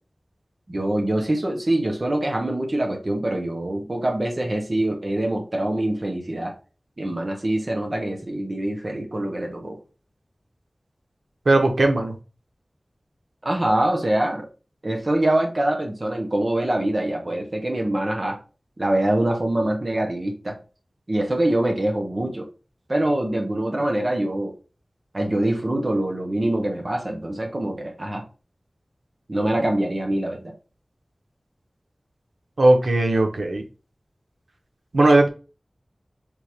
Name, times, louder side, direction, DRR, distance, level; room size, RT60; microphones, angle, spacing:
voice 1, 0.7-6.5 7.0-9.8 13.4-14.4 14.8-18.4 18.8-20.5 21.1-22.5 22.9-24.5 25.1-28.2 29.3-30.5, right 1 dB, 45° right, 1 dB, 1.2 m, -24 dB
voice 2, 11.5-12.1 32.6-33.6 34.9-35.3, right 2 dB, 90° right, 3 dB, 1.0 m, -17 dB
3.6 x 2.9 x 4.7 m, 0.33 s
wide cardioid pair, 60°, 0 cm